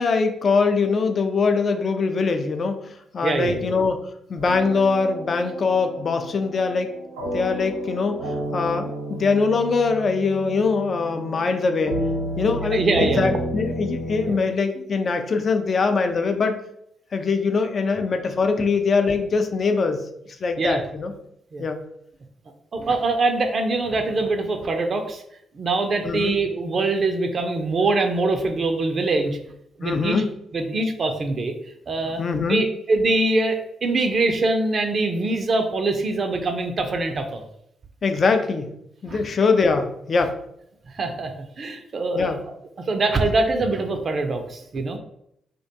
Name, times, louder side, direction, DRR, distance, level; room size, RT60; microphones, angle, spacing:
voice 1, 0.0-4.0 4.3-6.9 7.3-8.2 8.5-12.0 12.4-16.6 17.1-20.0 20.4-21.1 21.6-21.8 26.0-26.3 29.8-30.3 32.2-32.6 38.0-38.7 39.0-40.4 42.1-42.4, left 4 dB, 50° left, 6 dB, 0.3 m, -22 dB
voice 2, 3.2-3.7 12.7-13.3 14.2-14.4 20.6-20.8 21.5-21.6 22.7-25.2 25.5-29.4 29.8-30.2 30.5-31.5 31.9-32.2 32.5-37.4 39.1-39.2 40.9-41.3 41.6-42.4 42.9-45.0, right 2 dB, 50° right, 5 dB, 0.4 m, -23 dB
sound 1, 4.4-14.3, right 1 dB, 90° right, 0.7 m, -31 dB
2.4 x 2.2 x 2.7 m, 0.74 s
hypercardioid pair, 45°, 0 cm